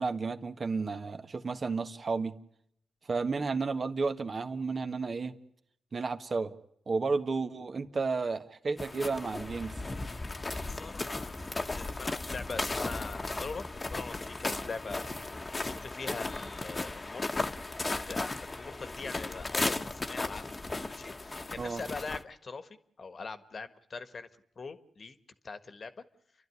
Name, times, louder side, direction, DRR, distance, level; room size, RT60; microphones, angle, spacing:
voice 1, 0.0-2.4 3.1-5.3 5.9-6.5 6.9-9.8 21.6-21.8, right 4 dB, 50° right, 1.5 m, -32 dB
sound 1, 8.8-22.2, left 2 dB, 30° left, 1.3 m, -36 dB
voice 2, 10.3-15.1 15.5-17.5 17.9-20.5 20.9-24.3 24.6-25.2 25.4-25.9, left 4 dB, 55° left, 1.6 m, -42 dB
29.5 x 12.0 x 9.8 m
cardioid pair, 55°, 0 cm